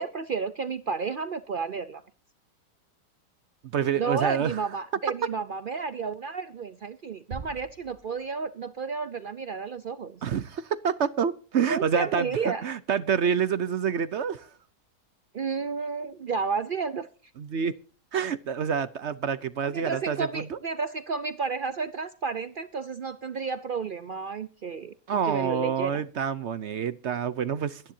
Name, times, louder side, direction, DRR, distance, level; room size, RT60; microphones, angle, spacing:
voice 1, 0.0-2.0 4.0-10.2 11.6-12.6 15.3-17.1 19.7-26.0, right 5 dB, 90° right, 12 dB, 0.4 m, -32 dB
voice 2, 3.7-4.6 10.2-14.5 17.4-17.7 18.1-20.6 25.1-27.8, right 7 dB, 60° right, 15 dB, 0.7 m, -27 dB
sound 1, 7.3-8.7, right 5 dB, 40° right, 1.8 m, -43 dB
24.0 x 10.0 x 2.7 m, 0.39 s
omnidirectional pair, 1.9 m